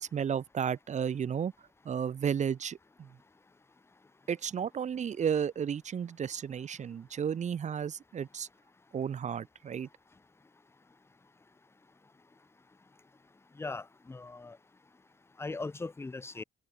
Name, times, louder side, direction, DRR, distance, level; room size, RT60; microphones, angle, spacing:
voice 1, 0.0-1.5 1.8-3.2 4.3-8.5 8.9-9.9, right 8 dB, 35° right, 0.5 m, -33 dB
voice 2, 13.6-14.6 15.4-16.4, left 3 dB, 15° left, 0.5 m, -39 dB
cardioid pair, 90°, 20 cm